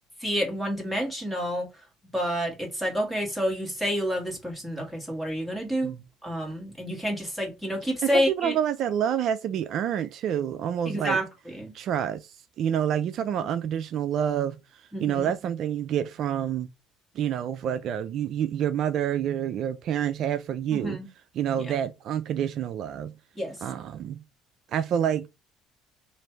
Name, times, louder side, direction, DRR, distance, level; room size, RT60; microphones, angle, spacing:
voice 1, 0.2-1.7 2.1-5.9 6.2-8.6 10.8-11.7 14.9-15.3 20.7-21.1 21.6-21.7 23.3-23.6, equal, 5° left, 1.8 m, -29 dB
voice 2, 8.0-11.2 11.7-14.6 15.0-16.7 17.2-21.0 21.4-23.1 23.6-24.2 24.7-25.3, right 9 dB, 55° right, 0.3 m, -28 dB
3.2 x 2.5 x 4.4 m
cardioid pair, 110°, 0 cm